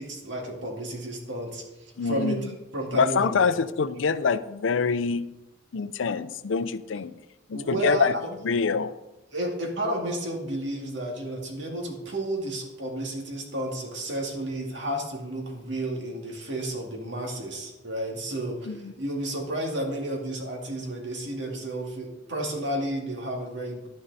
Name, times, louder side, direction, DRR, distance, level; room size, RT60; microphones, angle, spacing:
voice 1, 0.0-3.5 7.5-8.3 9.3-23.9, right 1 dB, 65° right, 1 dB, 2.3 m, -32 dB
voice 2, 2.0-2.5 2.9-5.3 5.7-7.2 7.5-8.1 8.4-8.9 18.7-18.9, left 5 dB, 85° left, 15 dB, 0.5 m, -25 dB
11.5 x 9.6 x 4.1 m, 1.0 s
head